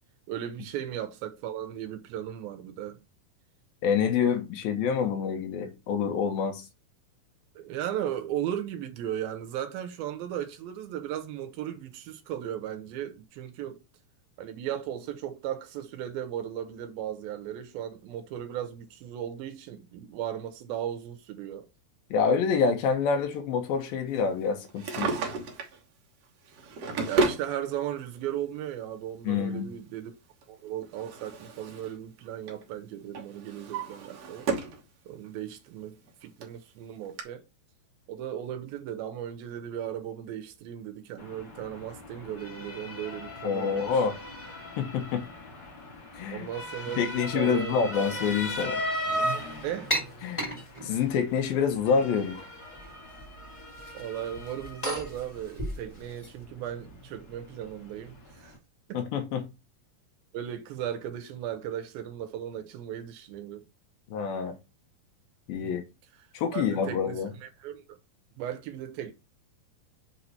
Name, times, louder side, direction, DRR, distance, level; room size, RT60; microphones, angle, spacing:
voice 1, 0.3-3.0 7.6-13.8 14.4-21.7 26.7-30.1 30.5-34.5 35.1-36.0 36.2-37.4 38.1-44.1 46.3-48.3 49.6-49.9 53.9-58.5 58.9-59.0 60.3-63.7 65.6-65.8 66.5-67.8 68.4-69.1, right 11 dB, 85° right, 2.5 m, -36 dB
voice 2, 3.8-6.6 22.1-25.1 29.2-29.7 43.4-44.2 44.8-45.3 46.1-46.5 47.0-48.8 50.2-50.5 50.8-52.4 58.9-59.4 64.1-64.6 65.5-65.8 66.3-67.3, left 6 dB, 75° left, 2.8 m, -27 dB
Drawer open or close, 24.6-25.8 26.5-27.5 28.6-28.7 30.4-32.0 32.3-32.6 33.1-34.8 35.2-35.3 36.1-36.2 36.4-36.5 37.2-37.3, right 4 dB, 60° right, 1.8 m, -31 dB
Motor vehicle (road) / Siren, 41.2-58.6, equal, 55° left, 1.0 m, -38 dB
sound 1, 49.9-51.2 51.9-52.5 52.7-53.3 53.6-56.3, equal, 10° left, 1.6 m, -35 dB
6.6 x 3.1 x 5.6 m
omnidirectional pair, 4.4 m